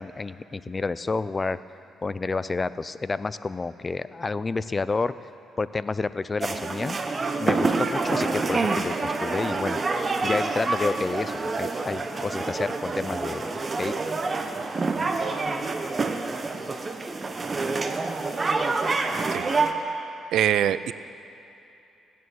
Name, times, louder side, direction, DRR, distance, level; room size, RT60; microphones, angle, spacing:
voice 1, 0.0-1.6 2.0-5.1 5.6-7.0 7.4-9.8 10.2-13.5 13.8-13.9, left 3 dB, 30° left, 15 dB, 0.4 m, -29 dB
sound 1, 6.4-19.7, right 3 dB, 30° right, 0.9 m, -27 dB
sound 2, 6.8-13.9, left 2 dB, 55° left, 2.7 m, -50 dB
voice 2, 20.3-20.9, right 10 dB, 75° right, 15 dB, 0.4 m, -23 dB
16.5 x 9.4 x 6.4 m, 2.8 s
cardioid pair, 90°, 0 cm